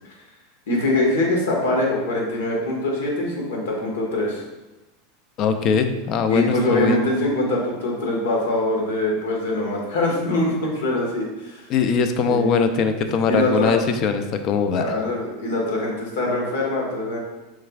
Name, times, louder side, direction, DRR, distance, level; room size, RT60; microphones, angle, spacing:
voice 1, 0.7-4.4 6.2-11.7 12.3-12.4 13.3-13.7 14.8-17.2, left 1 dB, 85° left, -1 dB, 1.5 m, -23 dB
voice 2, 5.4-7.0 11.7-14.8, left 5 dB, 45° left, 8 dB, 0.5 m, -21 dB
6.3 x 3.5 x 2.4 m, 1.0 s
supercardioid pair, 115°, 0 cm